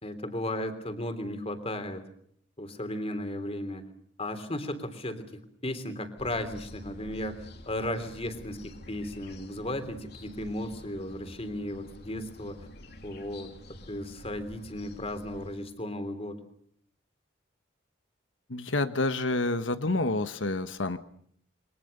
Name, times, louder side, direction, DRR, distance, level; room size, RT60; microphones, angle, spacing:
voice 1, 0.0-2.0 2.6-3.9 4.2-12.7 13.0-16.4, left 1 dB, 30° left, 10 dB, 3.3 m, -35 dB
sound 1, 6.2-15.5, left 1 dB, 60° left, 3.4 m, -48 dB
voice 2, 18.5-21.0, left 2 dB, 90° left, 10 dB, 1.4 m, -28 dB
28.5 x 24.0 x 6.8 m, 0.65 s
head